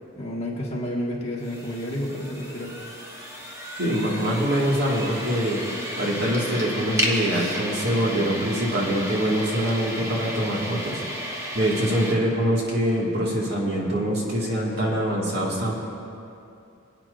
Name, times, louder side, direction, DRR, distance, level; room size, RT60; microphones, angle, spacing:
voice 1, 0.2-2.7, left 1 dB, 30° left, -4 dB, 1.7 m, -30 dB
sound 1, 1.4-12.1, equal, 15° right, 1.1 m, -33 dB
voice 2, 3.8-5.6 6.0-11.0 11.5-15.7, equal, 50° right, -4 dB, 2.1 m, -24 dB
25.0 x 9.1 x 2.6 m, 2.6 s
head